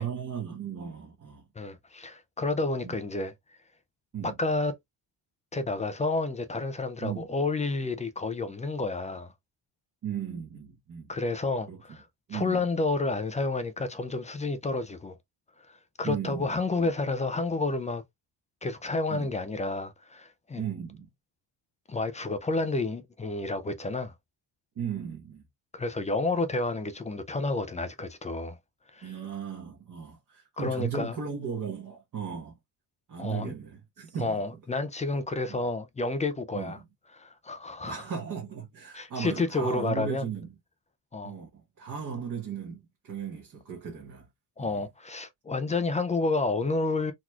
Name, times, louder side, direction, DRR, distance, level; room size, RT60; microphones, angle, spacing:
voice 1, 0.0-1.4 2.8-2.9 4.1-4.3 7.0-7.3 10.0-11.1 11.7-11.8 12.3-12.6 16.0-16.9 19.1-19.3 20.5-21.1 24.7-25.4 29.0-32.6 33.1-34.4 35.5-35.6 36.5-36.8 37.8-40.5 41.2-44.3 44.6-44.8, right 7 dB, 40° right, 1.1 m, -36 dB
voice 2, 1.6-3.3 4.2-4.7 5.5-9.3 11.1-12.1 12.3-15.2 15.6-18.0 18.6-20.6 21.9-24.1 25.7-28.6 28.9-29.1 30.6-31.2 33.2-33.5 34.2-36.8 37.2-38.0 38.9-40.3 41.1-41.4 44.6-47.1, left 3 dB, 15° left, 0.3 m, -30 dB
3.9 x 2.9 x 2.3 m
cardioid pair, 155°, 46 cm